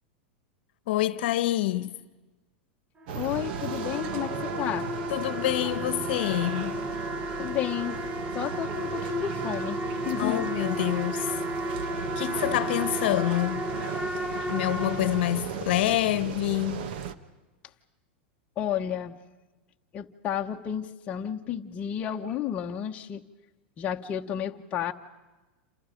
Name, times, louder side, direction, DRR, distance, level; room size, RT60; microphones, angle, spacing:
voice 1, 0.9-1.9 5.1-6.8 10.2-11.4 12.2-13.6 14.5-16.8, left 15 dB, 65° left, 1.0 m, -27 dB
sound 1, 3.0-15.8, equal, 15° right, 1.1 m, -34 dB
voice 2, 3.1-4.9 7.4-8.0 8.3-9.8 10.0-10.4 18.6-19.2 19.9-23.2 23.8-24.9, left 10 dB, 25° left, 1.1 m, -31 dB
sound 2, 3.1-17.1, right 7 dB, 60° right, 1.3 m, -36 dB
28.0 x 28.0 x 5.2 m
supercardioid pair, 155°, 6 cm